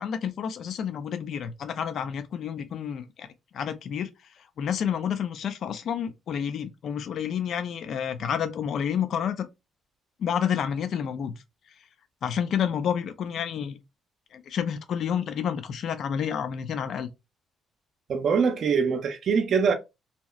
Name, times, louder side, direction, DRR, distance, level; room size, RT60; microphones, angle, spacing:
voice 1, 0.0-3.3 3.5-4.1 4.4-9.5 10.2-11.3 12.2-13.8 14.3-17.1, left 8 dB, 60° left, 0.3 m, -29 dB
voice 2, 18.1-19.7, right 6 dB, 55° right, 0.5 m, -23 dB
2.7 x 2.0 x 2.3 m
cardioid pair, 115°, 0 cm